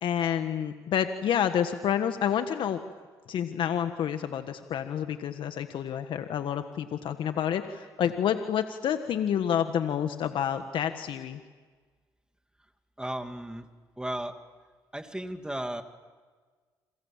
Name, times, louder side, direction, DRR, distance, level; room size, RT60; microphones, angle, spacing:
voice 1, 0.0-2.8 3.3-11.4, left 9 dB, 70° left, 8 dB, 1.5 m, -29 dB
voice 2, 13.0-13.7 14.0-14.4 14.9-15.8, right 1 dB, 10° right, 6 dB, 2.6 m, -35 dB
29.5 x 27.0 x 7.5 m, 1.4 s
supercardioid pair, 65°, 9 cm